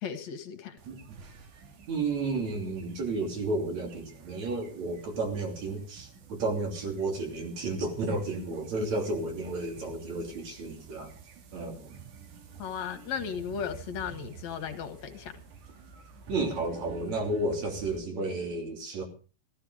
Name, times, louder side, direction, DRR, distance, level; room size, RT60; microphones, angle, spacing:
voice 1, 0.0-0.8 12.6-15.4, left 7 dB, 65° left, 7 dB, 2.7 m, -36 dB
sound 1, 0.8-18.0, right 6 dB, 85° right, 3.6 m, -50 dB
voice 2, 0.9-1.2 1.9-11.1 11.5-12.0 16.3-19.0, right 2 dB, 65° right, 3 dB, 4.3 m, -32 dB
15.0 x 14.5 x 4.9 m, 0.36 s
omnidirectional pair, 3.5 m